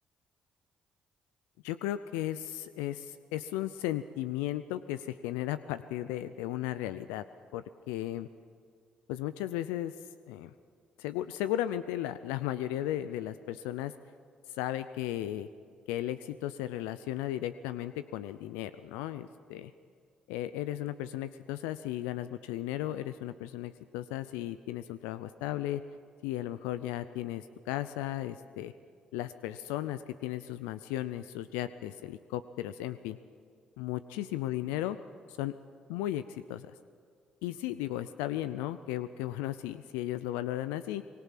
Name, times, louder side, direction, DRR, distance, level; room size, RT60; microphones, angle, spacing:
voice 1, 1.6-7.2 7.5-8.3 9.1-9.9 10.3-10.5 11.0-13.9 14.6-15.5 15.9-19.7 20.3-25.8 26.2-28.7 29.1-33.2 33.8-35.0 35.3-35.5 35.9-36.7 37.4-41.0, left 13 dB, 90° left, 12 dB, 0.5 m, -35 dB
25.5 x 20.0 x 5.9 m, 2.1 s
supercardioid pair, 55°, 3 cm